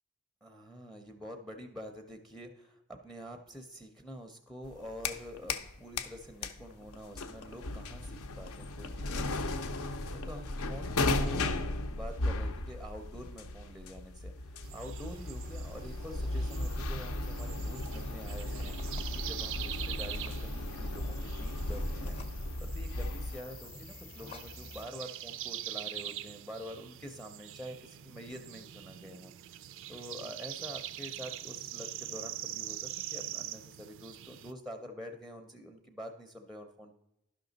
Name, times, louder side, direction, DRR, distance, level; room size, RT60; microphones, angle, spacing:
voice 1, 0.4-29.3 29.9-36.9, equal, ahead, 6 dB, 0.5 m, -47 dB
sound 1, 4.6-5.7 6.0-23.4, left 2 dB, 75° left, 0.6 m, -36 dB
sound 2, 14.6-34.5, right 12 dB, 60° right, 0.3 m, -44 dB
sound 3, 16.5-24.9, left 3 dB, 30° left, 0.7 m, -50 dB
11.0 x 5.9 x 3.9 m, 0.88 s
head